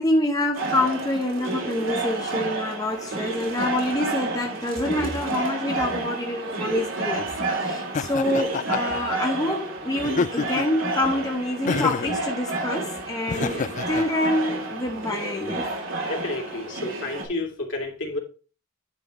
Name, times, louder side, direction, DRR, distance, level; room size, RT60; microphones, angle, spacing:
voice 1, 0.0-15.7, left 1 dB, 20° left, 0.9 m, -26 dB
sound 1, 0.5-17.3, right 2 dB, 75° right, 2.9 m, -30 dB
Laughter, 7.9-9.0 10.0-10.8 11.7-12.2 13.3-14.1, left 5 dB, 35° left, 0.3 m, -27 dB
voice 2, 16.1-18.2, left 2 dB, 65° left, 2.9 m, -30 dB
10.0 x 3.9 x 5.2 m
head